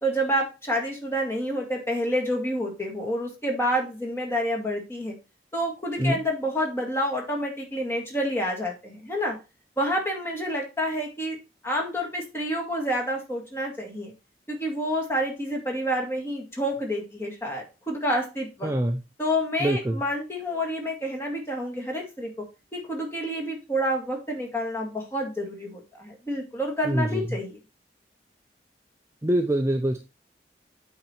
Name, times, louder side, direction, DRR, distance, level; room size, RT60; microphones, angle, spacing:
voice 1, 0.0-5.1 5.5-9.4 9.8-11.4 11.6-14.1 14.5-18.7 19.2-22.3 22.7-27.6, equal, 15° left, 0 dB, 2.0 m, -28 dB
voice 2, 18.6-19.0 19.6-20.0 26.9-27.3 29.2-30.0, right 1 dB, 15° right, 5 dB, 0.5 m, -24 dB
8.5 x 4.4 x 4.3 m, 0.28 s
head